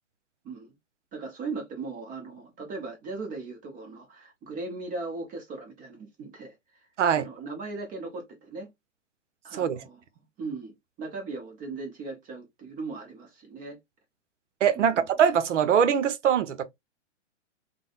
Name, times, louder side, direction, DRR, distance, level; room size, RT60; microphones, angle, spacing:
voice 1, 1.1-6.6 7.2-8.7 9.4-10.0 10.4-13.8 14.7-15.1, right 3 dB, 25° right, 0.7 m, -38 dB
voice 2, 14.6-16.6, right 8 dB, 80° right, 0.7 m, -22 dB
3.3 x 2.1 x 2.4 m
hypercardioid pair, 115°, 36 cm